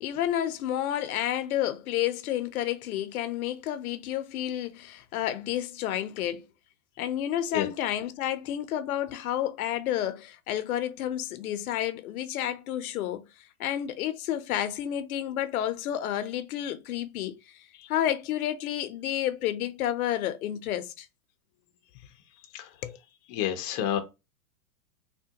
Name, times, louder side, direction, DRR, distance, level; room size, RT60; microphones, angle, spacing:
voice 1, 0.0-6.4 7.0-13.3 13.6-17.4 17.9-21.1 22.8-23.0, left 11 dB, 75° left, 0.6 m, -30 dB
voice 2, 23.3-24.0, left 11 dB, 30° left, 0.5 m, -29 dB
3.5 x 2.2 x 2.8 m
supercardioid pair, 140°, 43 cm